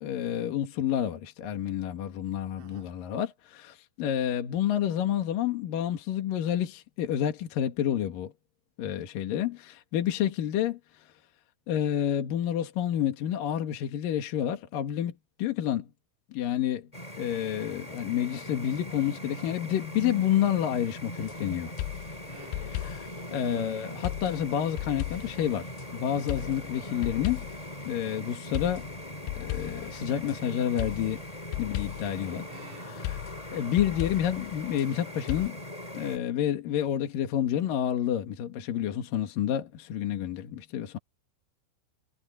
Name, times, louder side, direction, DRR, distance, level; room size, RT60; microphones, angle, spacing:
voice 1, 0.0-8.3 8.8-10.8 11.7-15.9 16.3-16.9 17.2-21.7 22.8-27.5 27.8-28.8 29.4-31.2 31.6-32.5 32.8-33.2 33.5-35.6 35.9-41.0, left 10 dB, 60° left, 2.6 m, -29 dB
voice 2, 2.6-2.9 22.3-22.8 32.5-33.2, right 6 dB, 80° right, 6.5 m, -52 dB
sound 1, 16.9-36.2, equal, 15° left, 1.3 m, -41 dB
sound 2, 21.2-21.4 21.8-23.2 24.0-25.9 26.3-27.8 28.5-30.4 30.8-32.3 33.0-34.9 35.3-35.5, left 16 dB, 90° left, 2.6 m, -36 dB
omnidirectional pair, 5.9 m